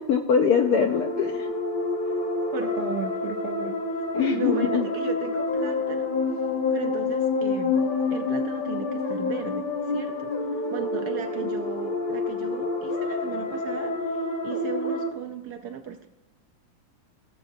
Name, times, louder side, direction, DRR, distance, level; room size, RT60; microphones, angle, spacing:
voice 1, 0.0-1.6 4.1-4.9, left 7 dB, 75° left, 4 dB, 0.9 m, -23 dB
sound 1, 0.5-15.1, left 3 dB, 60° left, 0.5 m, -28 dB
voice 2, 2.5-3.8 4.3-7.8 8.1-16.1, right 8 dB, 70° right, 6 dB, 0.9 m, -36 dB
17.0 x 7.2 x 2.6 m, 0.91 s
omnidirectional pair, 2.2 m